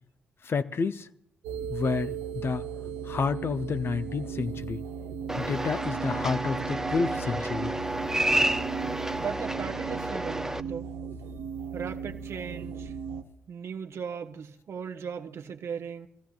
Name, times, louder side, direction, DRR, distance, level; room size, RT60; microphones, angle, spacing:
voice 1, 0.4-1.1 1.7-2.6 3.0-4.8 5.4-7.7, left 5 dB, 45° left, 0.7 m, -30 dB
sound 1, 1.4-13.2, right 7 dB, 75° right, 1.1 m, -37 dB
sound 2, 5.3-10.6, right 1 dB, 10° right, 0.8 m, -30 dB
voice 2, 9.2-10.9 11.7-12.9 13.5-16.1, right 7 dB, 55° right, 1.1 m, -38 dB
24.0 x 15.5 x 2.5 m
hypercardioid pair, 45°, 6 cm